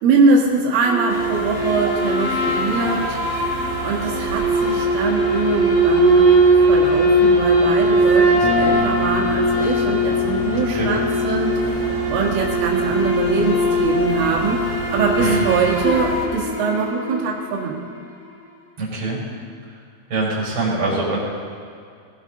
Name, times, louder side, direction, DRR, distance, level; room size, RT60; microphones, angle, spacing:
voice 1, 0.0-3.2 3.8-6.2 6.7-17.8, right 4 dB, 90° right, -2 dB, 4.3 m, -22 dB
sound 1, 0.8-17.4, right 1 dB, 50° left, 2.9 m, -20 dB
sound 2, 1.1-16.3, right 3 dB, 60° right, 5.4 m, -33 dB
sound 3, 8.4-18.1, left 5 dB, 75° left, 1.6 m, -31 dB
voice 2, 10.5-10.9 15.2-15.4 18.8-19.2 19.7-19.8 20.1-21.2, right 2 dB, 25° right, -5 dB, 4.8 m, -23 dB
20.5 x 15.5 x 3.8 m, 2.2 s
omnidirectional pair, 5.5 m